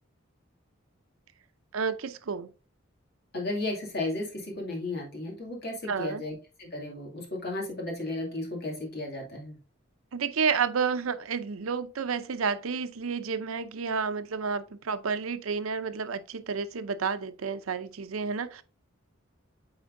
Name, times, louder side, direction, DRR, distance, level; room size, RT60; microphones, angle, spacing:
voice 1, 1.7-2.5 5.9-6.2 10.1-18.6, right 5 dB, 85° right, 0.6 m, -30 dB
voice 2, 3.3-9.6, left 2 dB, 50° left, 2.2 m, -34 dB
8.9 x 4.3 x 2.6 m
head